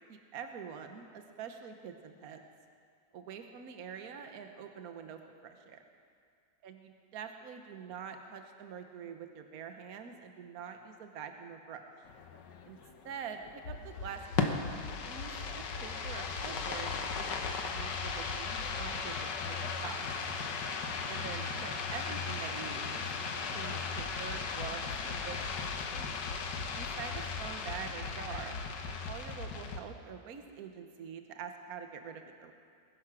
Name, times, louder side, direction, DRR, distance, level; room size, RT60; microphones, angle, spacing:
voice 1, 0.1-2.4 3.1-5.8 6.6-6.8 7.1-11.8 12.6-12.8 13.0-17.3 17.6-20.1 21.1-23.0 23.3-26.1 26.7-32.5, right 7 dB, 60° right, 6 dB, 1.4 m, -45 dB
sound 1, 12.1-29.8, left 5 dB, 80° left, 1.7 m, -37 dB
20.5 x 11.0 x 6.1 m, 2.2 s
omnidirectional pair, 1.9 m